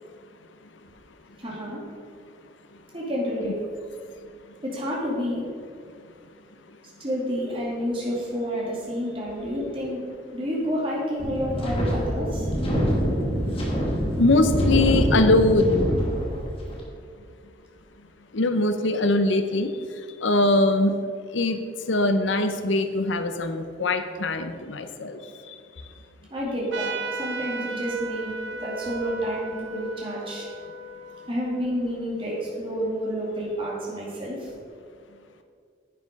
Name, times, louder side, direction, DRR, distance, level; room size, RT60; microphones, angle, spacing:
voice 1, 1.4-1.8 2.9-3.6 4.6-5.4 7.0-10.0 10.3-12.5 26.3-30.5 31.3-34.5, equal, 25° right, -5 dB, 2.6 m, -29 dB
Wind, 11.2-16.8, equal, 30° left, 2.0 m, -25 dB
voice 2, 14.1-15.9 18.3-21.0 21.3-25.6, left 2 dB, 75° left, 8 dB, 0.8 m, -23 dB
Trumpet, 26.7-31.8, right 4 dB, 70° right, 1.0 m, -36 dB
9.9 x 8.5 x 5.4 m, 2.2 s
head